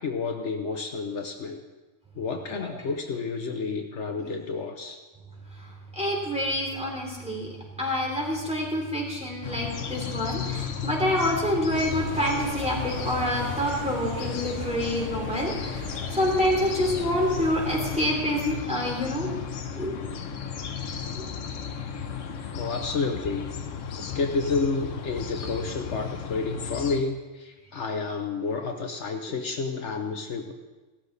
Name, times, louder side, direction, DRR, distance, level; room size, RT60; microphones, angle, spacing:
voice 1, 0.0-1.6 2.2-5.0 22.5-23.5 23.9-30.5, left 4 dB, 70° left, 4 dB, 1.2 m, -30 dB
voice 2, 6.0-7.5 7.8-15.8 16.1-19.3 19.8-19.9 21.1-21.2, equal, 5° right, -3 dB, 3.5 m, -27 dB
sound 1, 9.4-27.0, left 7 dB, 85° left, 1.3 m, -34 dB
sound 2, 11.7-18.0, equal, 55° right, 5.0 m, -39 dB
17.0 x 13.0 x 4.1 m, 1.2 s
omnidirectional pair, 1.3 m